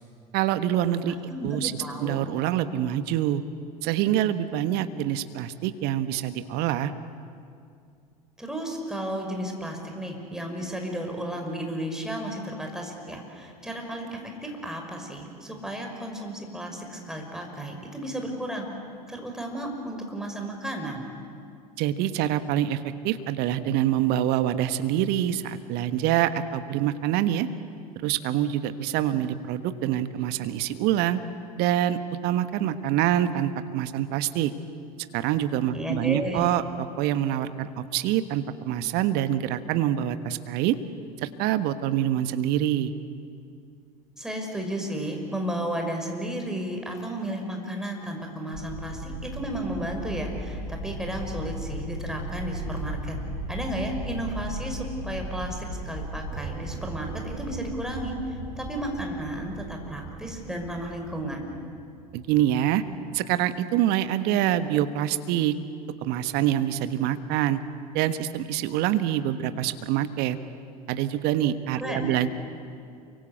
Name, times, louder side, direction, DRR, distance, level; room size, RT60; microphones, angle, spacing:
voice 1, 0.3-1.2 1.4-1.7 2.0-3.4 3.8-6.9 21.8-27.5 28.0-31.2 31.6-34.5 35.1-36.6 37.0-40.8 41.2-42.9 62.1-62.8 63.1-65.5 66.0-67.6 67.9-70.4 70.9-72.3, right 12 dB, 50° right, 11 dB, 1.4 m, -25 dB
voice 2, 1.1-1.5 1.8-2.2 8.4-18.7 19.1-21.1 35.7-36.4 44.2-53.1 53.5-61.5 71.8-72.2, right 1 dB, 5° right, 2 dB, 6.0 m, -33 dB
spaceship takeoff, 48.5-61.0, right 1 dB, 90° right, 6.6 m, -36 dB
sound 1, 56.3-63.2, right 9 dB, 30° right, 0.9 m, -44 dB
28.5 x 24.5 x 8.2 m, 2.3 s
figure-of-eight pair, 75°, 21 cm